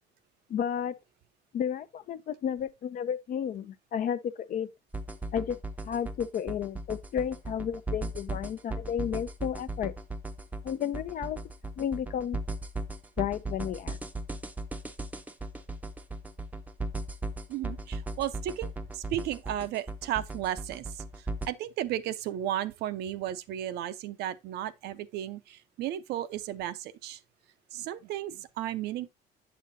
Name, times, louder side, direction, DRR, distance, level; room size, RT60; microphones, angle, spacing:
voice 1, 0.5-0.9 1.5-4.7 5.3-5.6 5.9-9.9 10.6-11.4 11.8-12.4 13.2-14.0, left 9 dB, 55° left, 0.6 m, -32 dB
sound 1, 4.9-21.5, right 2 dB, 10° right, 0.6 m, -37 dB
voice 2, 17.5-21.0 21.4-27.2 27.7-29.1, right 12 dB, 80° right, 0.6 m, -34 dB
7.4 x 7.0 x 2.7 m
cardioid pair, 110°, 17 cm